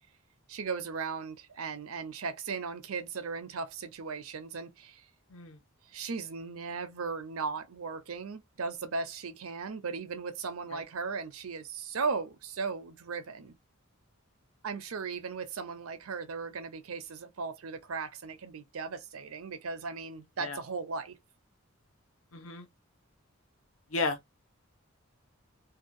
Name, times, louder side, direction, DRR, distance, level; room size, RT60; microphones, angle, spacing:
voice 1, 0.5-5.1 5.9-13.5 14.6-21.2, right 4 dB, 85° right, 0.6 m, -37 dB
voice 2, 22.3-22.7 23.9-24.4, left 3 dB, 75° left, 0.8 m, -34 dB
2.8 x 2.2 x 2.6 m
head